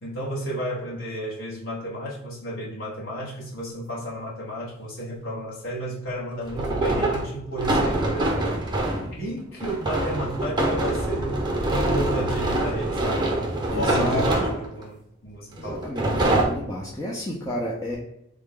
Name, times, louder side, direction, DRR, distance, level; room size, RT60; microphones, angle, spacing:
voice 1, 0.0-8.5 9.1-13.3 13.7-15.0 15.2-15.9, right 1 dB, 75° left, -6 dB, 1.3 m, -32 dB
sound 1, 3.8-3.9 6.5-9.1 9.6-14.8 15.7-16.5, right 1 dB, 20° right, 0.7 m, -24 dB
voice 2, 13.7-14.3 15.6-18.0, left 1 dB, 15° left, -4 dB, 0.5 m, -31 dB
3.5 x 2.2 x 3.7 m, 0.79 s
head